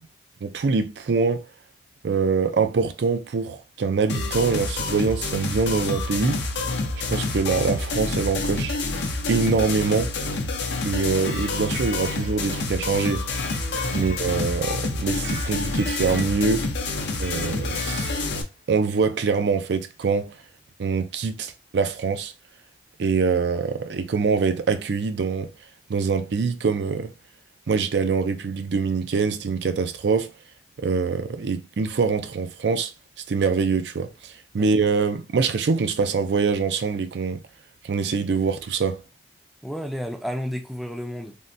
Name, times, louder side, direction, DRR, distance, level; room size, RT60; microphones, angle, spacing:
voice 1, 0.4-1.4 2.0-6.4 7.1-8.8 9.3-10.1 10.8-13.3 13.9-16.7 17.2-18.2 18.7-20.3 20.8-22.3 23.0-25.5 25.9-27.1 27.7-30.3 30.8-32.9 33.3-37.4 37.8-39.0, right 5 dB, 75° right, 0.4 m, -24 dB
sound 1, 4.1-18.4, left 3 dB, 80° left, 0.6 m, -28 dB
Electric guitar, 11.2-12.6 13.3-14.7 15.2-16.5 17.2-18.5, left 2 dB, 50° left, 0.8 m, -38 dB
voice 2, 39.6-41.4, equal, ahead, 0.4 m, -32 dB
3.6 x 2.1 x 2.6 m
head